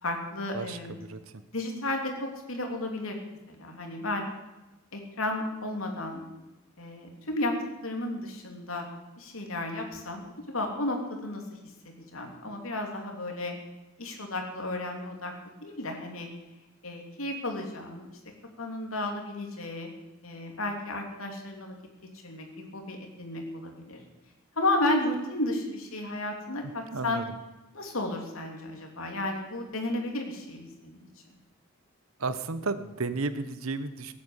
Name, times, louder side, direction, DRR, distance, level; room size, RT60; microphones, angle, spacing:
voice 1, 0.0-0.9 1.5-3.2 3.5-4.3 4.9-6.2 6.8-7.5 7.8-8.9 9.2-11.4 12.1-13.5 14.0-15.3 15.6-16.3 16.8-18.1 18.6-19.9 20.2-21.7 22.2-24.0 24.5-27.2 27.7-31.1, left 2 dB, 80° left, 2 dB, 3.3 m, -33 dB
voice 2, 0.5-1.4 26.9-27.3 32.2-34.1, right 3 dB, 85° right, 12 dB, 1.1 m, -33 dB
17.5 x 9.4 x 8.3 m, 1.0 s
head